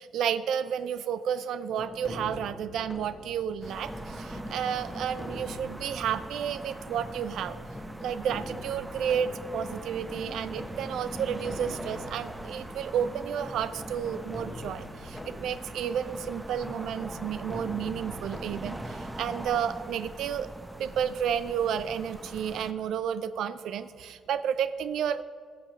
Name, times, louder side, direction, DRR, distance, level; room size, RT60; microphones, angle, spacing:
voice 1, 0.0-7.6 8.0-20.5 20.8-25.2, right 8 dB, 75° right, 13 dB, 0.3 m, -31 dB
sound 1, 1.8-20.5, left 1 dB, 15° left, 1.1 m, -44 dB
sound 2, 3.6-22.7, right 1 dB, 10° right, 0.7 m, -42 dB
14.0 x 5.7 x 6.1 m, 2.1 s
cardioid pair, 90°, 0 cm